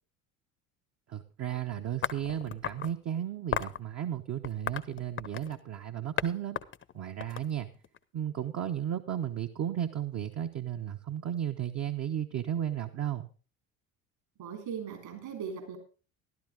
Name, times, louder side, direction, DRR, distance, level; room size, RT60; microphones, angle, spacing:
voice 1, 1.1-6.6 6.9-7.7 8.1-13.3, right 10 dB, 35° right, 5 dB, 1.0 m, -34 dB
sound 1, 2.0-2.9 3.5-3.8 4.4-5.6 6.2-6.3 6.6-8.0, left 9 dB, 25° left, 0.7 m, -34 dB
voice 2, 14.4-15.8, right 7 dB, 55° right, 3 dB, 3.7 m, -39 dB
13.5 x 12.0 x 3.7 m, 0.36 s
hypercardioid pair, 65°, 44 cm